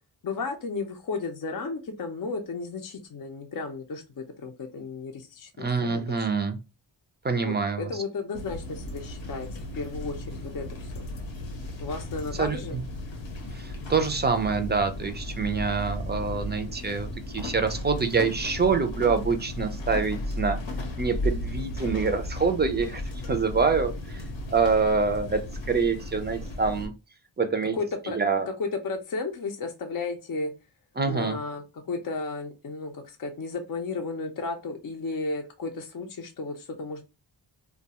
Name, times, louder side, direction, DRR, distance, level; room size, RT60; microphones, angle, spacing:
voice 1, 0.2-6.3 7.4-9.5 9.7-10.9 11.8-12.8 27.7-28.2 28.5-30.5 31.0-37.1, left 3 dB, 50° left, 3 dB, 0.5 m, -34 dB
voice 2, 5.6-6.6 7.2-7.9 12.4-12.8 13.5-17.1 17.3-20.6 21.0-23.0 23.3-25.4 25.7-26.9 27.4-27.7 28.1-28.5 31.0-31.4, right 4 dB, 25° right, 7 dB, 0.4 m, -26 dB
sound 1, 8.3-26.9, left 1 dB, 85° left, 0.8 m, -35 dB
2.3 x 2.2 x 2.8 m, 0.28 s
cardioid pair, 70°, 44 cm